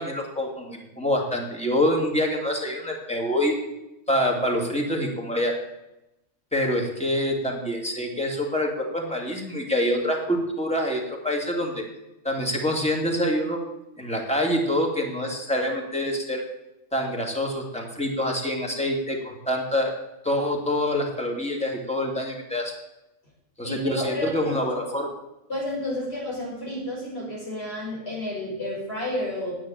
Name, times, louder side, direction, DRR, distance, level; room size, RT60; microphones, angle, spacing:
voice 1, 0.0-3.5 4.1-5.6 6.5-11.8 12.2-13.6 14.0-16.4 16.9-19.9 20.2-22.7 23.6-25.1, left 1 dB, 5° left, 1 dB, 2.3 m, -26 dB
voice 2, 23.6-24.5 25.5-29.5, left 1 dB, 50° left, -4 dB, 6.0 m, -31 dB
10.0 x 8.7 x 8.9 m, 0.92 s
omnidirectional pair, 1.4 m